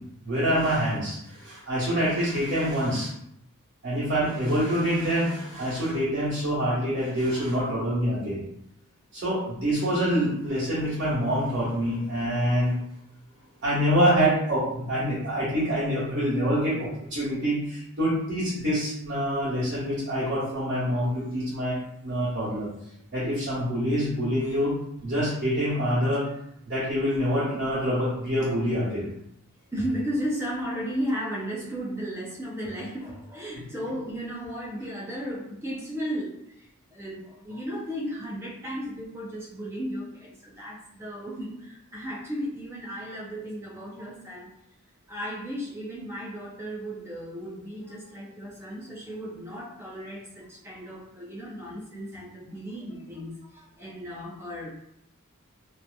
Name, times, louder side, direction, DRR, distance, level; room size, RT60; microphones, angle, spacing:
voice 1, 0.2-3.1 3.8-8.4 9.1-12.7 13.6-21.8 22.0-22.7 23.1-24.8 25.0-26.3 26.7-29.0, equal, 60° right, -10 dB, 1.1 m, -26 dB
voice 2, 29.7-44.5 45.1-54.7, equal, 10° right, -4 dB, 0.5 m, -35 dB
2.7 x 2.4 x 2.2 m, 0.77 s
head